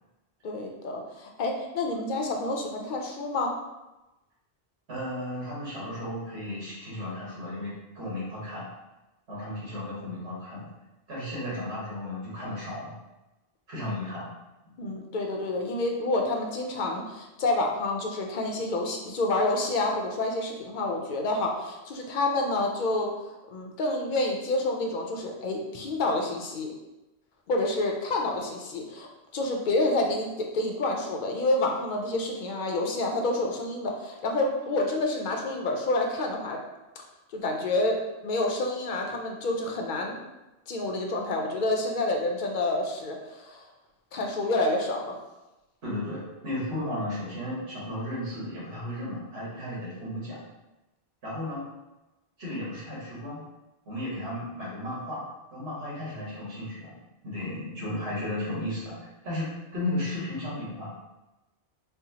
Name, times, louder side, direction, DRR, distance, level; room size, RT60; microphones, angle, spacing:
voice 1, 0.4-3.5 14.8-23.1 23.5-26.7 27.5-36.6 37.3-38.0 38.2-40.2 40.7-43.6 44.1-45.2, left 2 dB, 55° left, 1 dB, 0.6 m, -28 dB
voice 2, 4.9-8.7 9.3-10.7 11.1-12.9 13.7-14.3 45.8-50.4 51.2-51.6 52.4-53.4 53.8-55.2 55.5-56.9 57.2-58.9 59.2-60.9, left 1 dB, 80° right, -7 dB, 1.6 m, -34 dB
4.4 x 2.0 x 2.8 m, 1.0 s
omnidirectional pair, 1.1 m